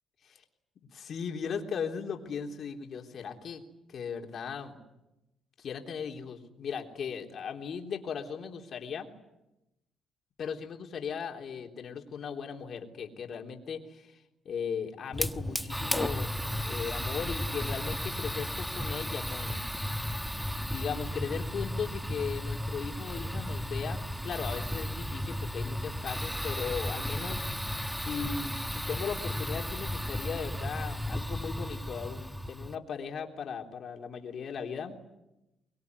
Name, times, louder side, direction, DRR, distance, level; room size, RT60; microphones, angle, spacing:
voice 1, 0.9-3.6 3.9-4.8 5.6-9.1 10.4-16.3 16.6-19.6 20.6-27.5 28.0-35.0, left 6 dB, 60° left, 3 dB, 3.6 m, -37 dB
Fire, 15.1-32.7, equal, ahead, 1.2 m, -34 dB
23.5 x 22.0 x 9.7 m, 0.93 s
cardioid pair, 90°, 0 cm